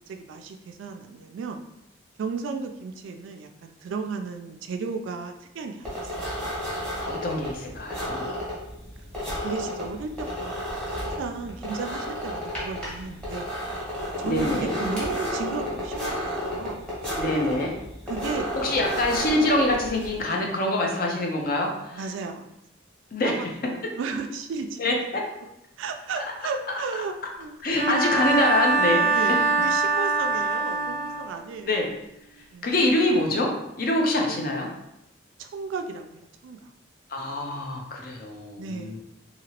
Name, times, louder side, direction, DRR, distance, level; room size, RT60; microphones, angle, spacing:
voice 1, 0.1-1.7 2.2-6.1 9.4-13.5 14.2-16.1 16.4-16.9 18.1-18.5 21.9-22.5 23.2-24.8 25.8-27.6 27.9-28.4 29.1-31.9 32.5-32.7 34.3-34.4 35.4-36.7 38.6-39.0, right 4 dB, 85° right, 5 dB, 0.3 m, -34 dB
sound 1, 5.8-20.2, equal, 5° left, 1.0 m, -32 dB
voice 2, 7.1-8.4 14.2-14.7 17.2-17.7 18.6-22.0 23.1-23.4 24.8-25.2 26.2-26.3 27.6-29.1 31.7-31.9 32.6-34.7 37.1-39.0, left 1 dB, 50° left, 1 dB, 0.6 m, -25 dB
Bowed string instrument, 27.7-31.5, right 4 dB, 35° right, 0.6 m, -24 dB
2.9 x 2.8 x 2.9 m, 0.85 s
head